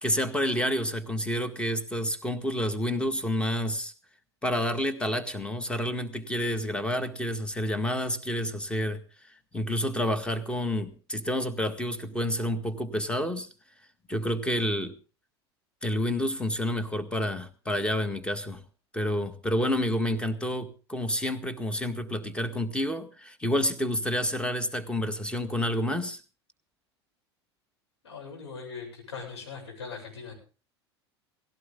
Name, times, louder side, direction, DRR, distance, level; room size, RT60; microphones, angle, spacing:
voice 1, 0.0-3.9 4.4-13.5 14.1-14.9 15.8-18.6 18.9-26.2, left 1 dB, 5° left, 10 dB, 1.8 m, -29 dB
voice 2, 28.0-30.3, left 5 dB, 75° left, -1 dB, 7.9 m, -40 dB
18.0 x 16.5 x 3.8 m, 0.34 s
figure-of-eight pair, 75°, 14 cm